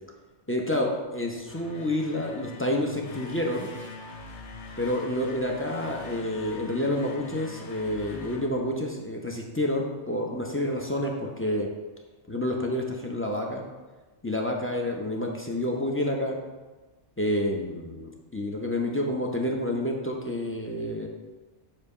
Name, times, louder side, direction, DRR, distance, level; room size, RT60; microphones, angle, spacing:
voice 1, 0.5-3.7 4.8-11.7 12.3-13.6 14.2-16.4 17.2-21.1, left 1 dB, 15° left, 0 dB, 0.5 m, -29 dB
sound 1, 1.4-9.3, left 4 dB, 75° left, 1.1 m, -43 dB
7.2 x 2.9 x 5.4 m, 1.2 s
omnidirectional pair, 1.2 m